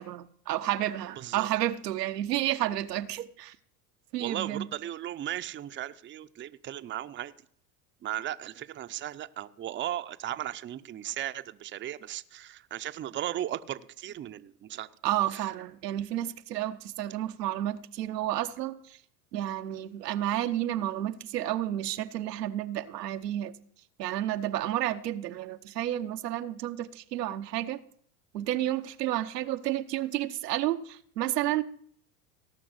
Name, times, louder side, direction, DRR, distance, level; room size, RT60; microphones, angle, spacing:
voice 1, 0.0-3.6 4.1-4.7 15.0-19.0 19.3-23.5 24.0-27.8 28.3-31.6, right 13 dB, 85° right, 0.9 m, -31 dB
voice 2, 1.2-1.5 4.2-7.3 8.0-14.9 15.3-15.4, right 12 dB, 25° right, 0.6 m, -36 dB
17.5 x 6.0 x 7.9 m
hypercardioid pair, 95°, 47 cm